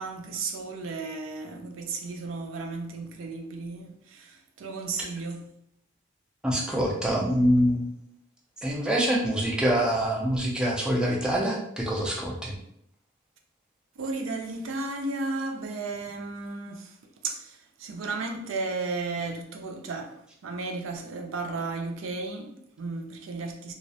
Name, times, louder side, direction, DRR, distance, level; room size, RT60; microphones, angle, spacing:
voice 1, 0.0-5.5 14.0-17.0 17.2-23.7, right 3 dB, 75° right, 0.4 m, -34 dB
voice 2, 6.4-7.9 8.6-12.6, equal, 5° right, 0.3 m, -25 dB
2.3 x 2.0 x 2.7 m
head